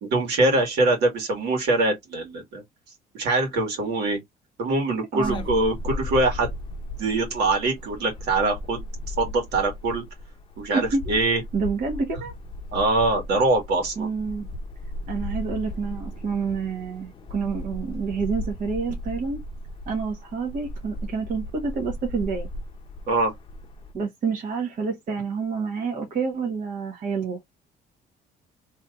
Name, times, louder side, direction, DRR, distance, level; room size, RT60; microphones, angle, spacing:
voice 1, 0.0-2.6 3.1-4.2 4.6-6.5 7.0-10.0 10.6-11.4 12.7-14.1 23.1-23.3, right 2 dB, 75° right, 1.8 m, -23 dB
voice 2, 5.1-5.4 10.7-11.0 11.5-12.3 14.0-14.5 15.1-19.4 19.9-22.5 23.9-27.4, right 5 dB, 55° right, 1.3 m, -28 dB
sound 1, 5.2-23.9, left 1 dB, 30° left, 0.7 m, -36 dB
3.3 x 2.9 x 2.4 m
cardioid pair, 110°, 17 cm